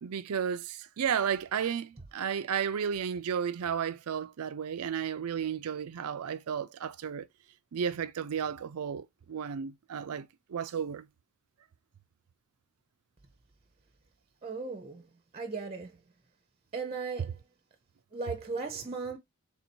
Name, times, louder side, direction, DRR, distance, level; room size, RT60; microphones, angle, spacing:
voice 1, 0.0-7.3 7.7-11.0, right 7 dB, 80° right, 0.4 m, -33 dB
voice 2, 14.4-15.1 15.3-15.9 16.7-17.4 18.1-19.2, right 4 dB, 25° right, 0.6 m, -36 dB
3.6 x 2.7 x 4.4 m
head